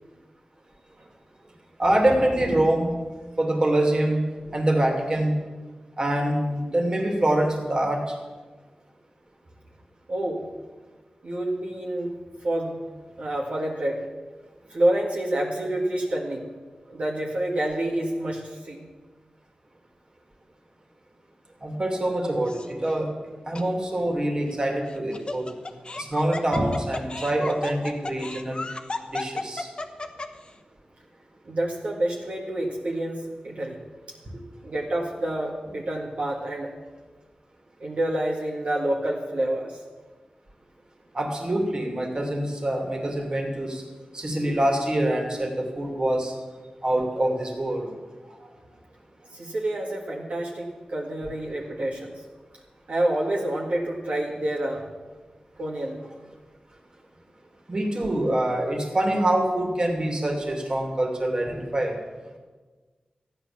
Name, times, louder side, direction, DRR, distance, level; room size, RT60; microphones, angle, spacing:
voice 1, 1.8-2.9 3.4-4.2 4.5-5.4 6.0-8.0 21.6-23.1 23.5-25.5 26.0-28.6 29.1-29.7 41.1-43.8 44.1-46.3 46.8-47.9 48.4-48.5 57.7-62.0, right 1 dB, 35° right, 2 dB, 2.7 m, -25 dB
voice 2, 10.1-10.5 11.2-12.1 12.4-12.8 13.2-14.0 14.7-16.5 16.9-18.8 31.5-33.8 34.6-36.7 37.8-39.8 49.3-52.2 52.9-54.9 55.6-56.0, right 1 dB, 65° right, -3 dB, 2.0 m, -28 dB
Laughter, 22.5-22.9 23.5-23.6 24.9-30.5, left 2 dB, 40° left, 1.1 m, -34 dB
14.0 x 10.0 x 7.4 m, 1.3 s
wide cardioid pair, 95°, 2 cm